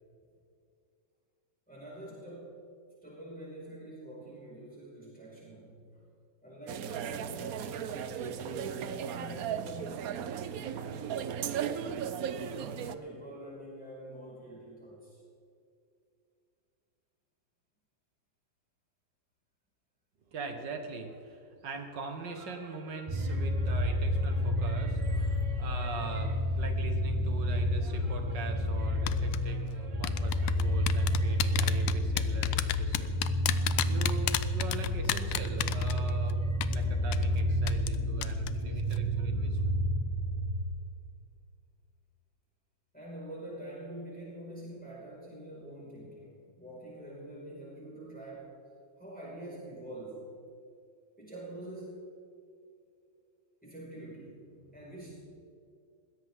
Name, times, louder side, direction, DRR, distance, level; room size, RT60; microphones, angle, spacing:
voice 1, 1.7-2.6 3.0-5.9 6.4-10.1 10.4-11.6 12.3-15.2 25.1-25.3 42.9-48.5 49.0-50.3 51.2-52.1 53.6-55.2, right 1 dB, 5° left, -6 dB, 4.9 m, -46 dB
sound 1, 6.7-12.9, right 8 dB, 75° right, 0.8 m, -36 dB
voice 2, 20.3-39.8, right 4 dB, 60° right, 5 dB, 2.1 m, -42 dB
sound 2, 23.1-40.6, equal, 25° right, 3.7 m, -30 dB
sound 3, 29.1-29.4 30.0-36.3 36.6-36.8 37.1-37.2 37.7-38.0 38.2-38.5 38.8-39.0, left 14 dB, 90° left, 1.5 m, -31 dB
21.0 x 16.0 x 3.7 m, 2.4 s
omnidirectional pair, 2.3 m